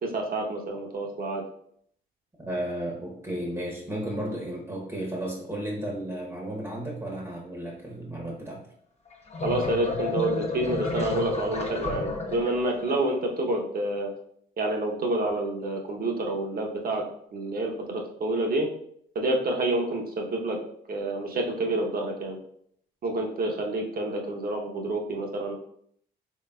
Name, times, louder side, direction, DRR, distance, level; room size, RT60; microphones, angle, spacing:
voice 1, 0.0-1.4 9.4-14.1 14.6-17.0 17.3-18.7 19.1-20.6 20.9-22.4 23.0-25.5, right 2 dB, 50° right, 1 dB, 0.8 m, -28 dB
voice 2, 2.4-8.6, right 1 dB, 15° right, -2 dB, 0.8 m, -33 dB
sound 1, 9.1-13.0, left 3 dB, 35° left, 0.8 m, -31 dB
3.8 x 3.3 x 2.2 m, 0.67 s
cardioid pair, 90°, 20 cm